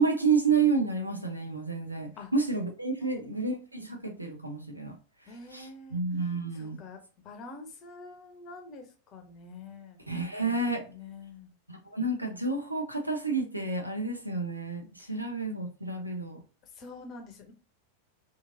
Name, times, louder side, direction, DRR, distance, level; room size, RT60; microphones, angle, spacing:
voice 1, 0.0-4.9 5.5-6.8 10.1-10.9 11.7-16.4, right 4 dB, 85° right, 3 dB, 0.6 m, -30 dB
voice 2, 3.0-3.5 5.3-6.0 6.5-7.0 7.2-10.0 10.9-11.5 15.0-15.3 16.6-17.5, left 3 dB, 35° left, 5 dB, 0.7 m, -46 dB
3.0 x 2.4 x 2.5 m, 0.35 s
figure-of-eight pair, 90°, 0 cm